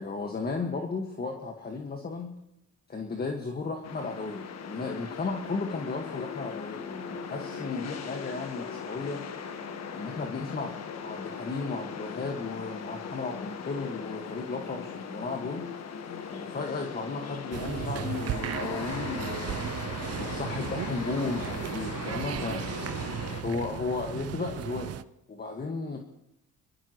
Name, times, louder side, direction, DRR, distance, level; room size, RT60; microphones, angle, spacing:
voice 1, 0.0-2.3 2.9-9.2 9.9-10.7 11.0-15.6 16.3-19.6 20.2-22.6 23.4-24.9 25.3-26.0, left 4 dB, 30° left, 2 dB, 1.8 m, -34 dB
sound 1, 3.8-23.4, left 6 dB, 60° left, 1.5 m, -39 dB
sound 2, 17.5-25.0, right 11 dB, 55° right, 0.6 m, -35 dB
25.0 x 13.5 x 3.1 m, 0.85 s
cardioid pair, 90°, 30 cm